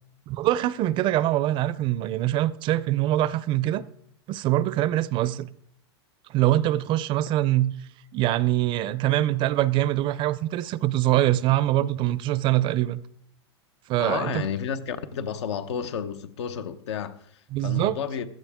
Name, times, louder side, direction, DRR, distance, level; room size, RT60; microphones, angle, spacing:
voice 1, 0.3-3.8 4.3-5.5 6.3-7.7 8.1-13.0 13.9-14.4 17.5-18.0, right 14 dB, 35° right, 0.5 m, -23 dB
voice 2, 14.0-18.3, left 7 dB, 80° left, 1.0 m, -31 dB
16.0 x 12.0 x 3.6 m
supercardioid pair, 130°, 14 cm